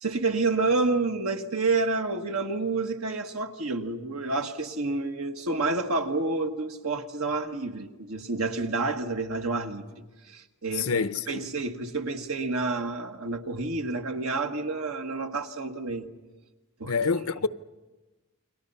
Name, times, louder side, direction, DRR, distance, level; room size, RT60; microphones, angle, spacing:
voice 1, 0.0-9.8 10.3-16.1 16.8-16.9, right 3 dB, 90° right, 1.6 m, -29 dB
voice 2, 10.7-11.5 16.9-17.5, left 5 dB, 85° left, 0.8 m, -27 dB
29.5 x 22.5 x 5.6 m
head